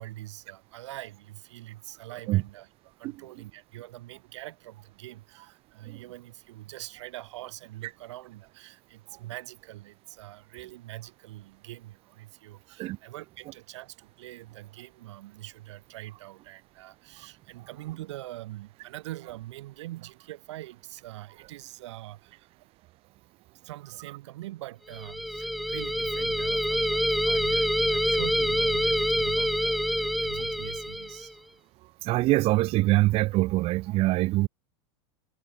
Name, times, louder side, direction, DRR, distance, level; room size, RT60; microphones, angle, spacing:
voice 1, 0.0-2.7 3.0-22.5 23.6-31.4, right 16 dB, 75° right, 4.3 m, -44 dB
sound 1, 24.9-31.3, equal, ahead, 1.4 m, -26 dB
voice 2, 32.0-34.5, right 18 dB, 40° right, 1.8 m, -23 dB
supercardioid pair, 140°, 15 cm